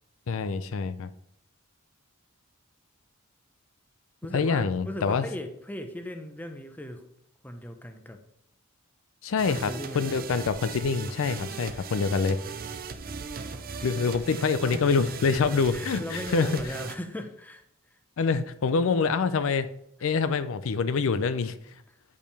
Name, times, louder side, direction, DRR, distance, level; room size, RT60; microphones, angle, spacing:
voice 1, 0.3-1.1 4.3-5.2 9.2-12.4 13.8-16.5 18.2-19.7 20.0-21.7, left 5 dB, 65° left, 13 dB, 0.4 m, -26 dB
voice 2, 4.2-7.1 7.4-8.2 9.5-10.2 11.2-11.4 11.7-11.8 13.7-17.6 17.9-18.0, left 1 dB, 10° left, 7 dB, 0.6 m, -38 dB
sound 1, 9.4-17.0, right 5 dB, 45° right, 0.5 m, -38 dB
8.8 x 5.3 x 3.3 m, 0.73 s
head